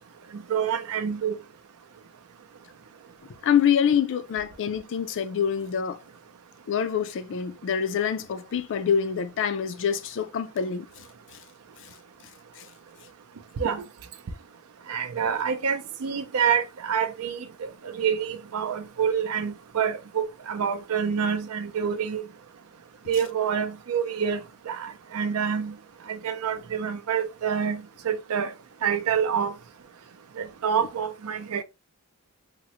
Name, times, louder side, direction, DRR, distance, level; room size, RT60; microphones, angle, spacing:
voice 1, 0.5-1.3 13.6-13.8 14.9-22.2 23.1-24.4 24.7-25.7 26.1-28.5 28.8-29.5 30.4-31.6, right 7 dB, 75° right, 0.5 m, -27 dB
voice 2, 3.4-6.0 6.7-11.0 12.6-12.7, left 8 dB, 60° left, 0.3 m, -26 dB
3.6 x 2.0 x 2.8 m
head